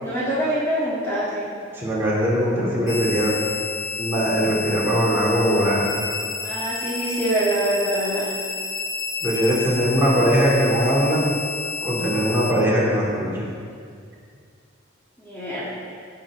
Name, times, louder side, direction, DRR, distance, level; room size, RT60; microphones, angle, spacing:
voice 1, 0.0-1.5 6.4-8.3 15.2-15.7, right 1 dB, 15° left, -9 dB, 1.8 m, -25 dB
voice 2, 1.8-3.3 4.0-5.9 9.2-11.2 11.8-13.4, equal, 10° right, -7 dB, 2.9 m, -21 dB
sound 1, 2.9-12.5, left 4 dB, 60° left, 1.5 m, -30 dB
16.5 x 7.6 x 3.7 m, 2.2 s
head